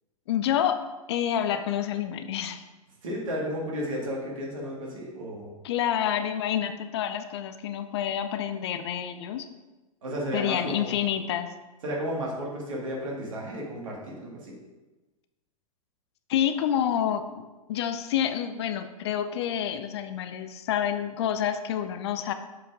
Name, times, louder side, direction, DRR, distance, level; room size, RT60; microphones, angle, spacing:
voice 1, 0.3-0.8 1.1-2.6 5.6-9.5 10.3-11.5 16.3-22.3, left 10 dB, 45° left, 10 dB, 0.5 m, -28 dB
voice 2, 3.0-5.5 10.0-10.9 11.8-14.6, equal, 60° right, -3 dB, 2.1 m, -33 dB
7.3 x 4.5 x 3.5 m, 1.1 s
figure-of-eight pair, 100°, 19 cm